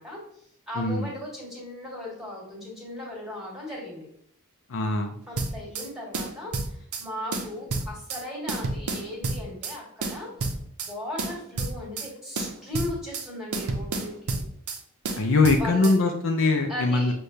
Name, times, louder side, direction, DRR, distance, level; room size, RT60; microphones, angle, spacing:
voice 1, 0.0-4.1 5.3-10.5 10.8-14.4 15.6-16.1 16.7-17.1, left 1 dB, ahead, -5 dB, 1.5 m, -37 dB
voice 2, 0.8-1.1 4.7-5.1 15.2-17.1, left 3 dB, 60° left, 3 dB, 0.5 m, -22 dB
sound 1, 5.4-5.9 6.1-7.0 7.3-8.2 8.5-9.8 10.0-10.9 11.2-12.1 12.4-13.3 13.5-14.8 15.1-16.0, right 3 dB, 75° right, 0.6 m, -30 dB
6.4 x 2.3 x 2.7 m, 0.68 s
head